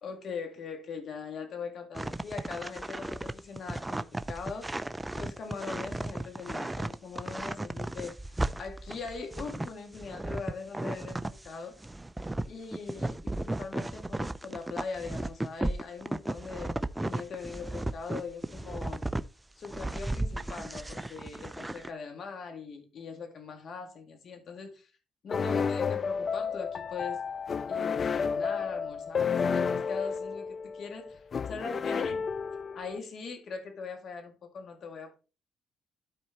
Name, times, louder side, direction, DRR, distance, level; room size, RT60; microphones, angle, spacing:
voice 1, 0.0-4.7 5.1-11.8 12.5-19.1 19.6-24.9 25.2-27.2 27.7-31.0 31.5-32.2 32.7-35.1, left 5 dB, 60° left, 2.0 m, -41 dB
sound 1, 1.9-11.5 11.8-19.2 19.6-21.9, right 1 dB, 10° right, 0.5 m, -35 dB
sound 2, 25.3-33.0, left 6 dB, 45° left, 0.3 m, -31 dB
13.0 x 4.4 x 2.9 m
cardioid pair, 90°, 0 cm